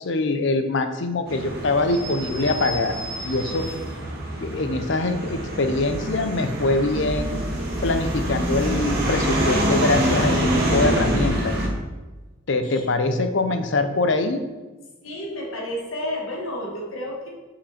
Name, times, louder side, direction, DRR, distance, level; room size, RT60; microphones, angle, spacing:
voice 1, 0.0-2.9 3.2-3.7 4.4-11.6 12.5-14.4, left 2 dB, 60° left, 8 dB, 0.6 m, -23 dB
sound 1, 1.3-11.7, right 1 dB, 45° right, 1.5 m, -25 dB
voice 2, 15.0-17.3, left 1 dB, 80° left, -2 dB, 1.6 m, -31 dB
5.9 x 5.4 x 4.2 m, 1.2 s
head